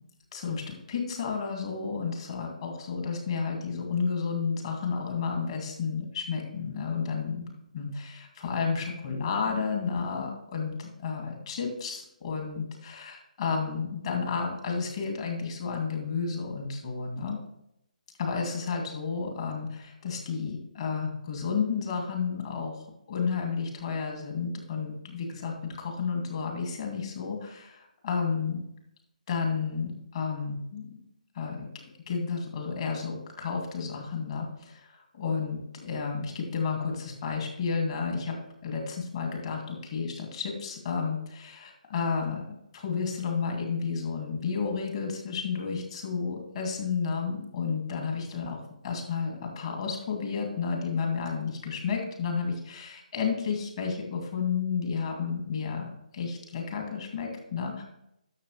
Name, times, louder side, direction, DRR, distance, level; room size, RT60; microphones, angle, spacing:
voice 1, 0.3-7.5 7.7-17.4 18.2-22.7 23.1-28.6 29.3-31.0 31.3-38.4 38.6-42.4 42.7-57.8, left 5 dB, 45° left, 2 dB, 2.5 m, -32 dB
11.5 x 6.7 x 3.3 m, 0.80 s
figure-of-eight pair, 140°, 4 cm